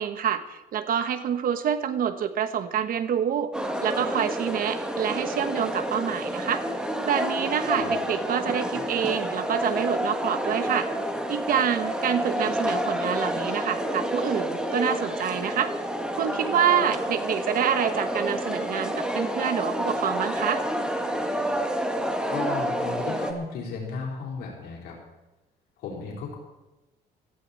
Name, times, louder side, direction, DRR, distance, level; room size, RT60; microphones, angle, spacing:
voice 1, 0.0-3.5 3.8-6.6 7.0-10.9 11.3-15.7 16.2-20.6, right 8 dB, 55° right, 11 dB, 1.2 m, -27 dB
sound 1, 3.5-23.3, equal, 5° right, 1.8 m, -29 dB
voice 2, 22.3-25.0 25.8-26.4, left 5 dB, 75° left, -2 dB, 4.1 m, -34 dB
17.0 x 14.5 x 4.3 m, 1.0 s
cardioid pair, 110°, 17 cm